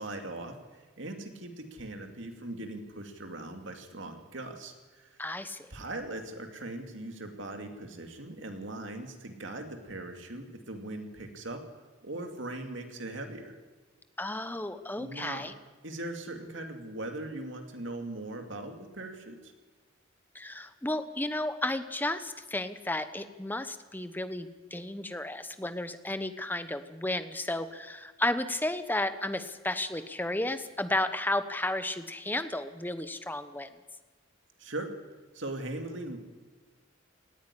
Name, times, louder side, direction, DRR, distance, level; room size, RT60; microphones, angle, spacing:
voice 1, 0.0-5.2 5.7-11.6 12.0-13.5 15.0-15.5 15.8-19.5 34.6-34.9 35.3-36.2, right 2 dB, 65° right, 5 dB, 2.6 m, -40 dB
voice 2, 5.2-5.7 14.2-15.5 20.3-33.7, left 1 dB, 10° left, 10 dB, 1.0 m, -33 dB
18.5 x 14.5 x 9.9 m, 1.3 s
head